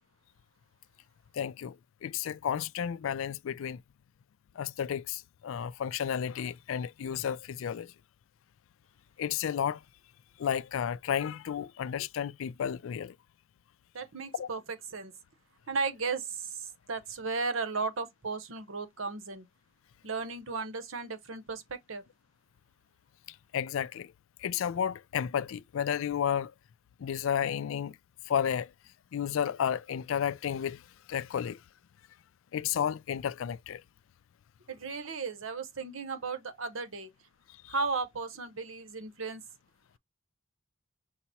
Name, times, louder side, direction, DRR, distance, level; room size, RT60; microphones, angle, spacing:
voice 1, 1.3-3.8 4.6-7.9 9.2-9.8 10.4-13.2 14.3-14.5 23.3-24.1 24.4-26.5 27.0-28.0 28.3-28.7 29.1-31.6 32.5-33.8 37.6-37.7, left 8 dB, 75° left, 0.3 m, -32 dB
voice 2, 13.9-14.6 14.9-15.1 15.7-19.5 20.0-22.0 34.7-37.1 37.7-39.4, right 4 dB, 80° right, 0.9 m, -35 dB
5.8 x 2.0 x 4.1 m
head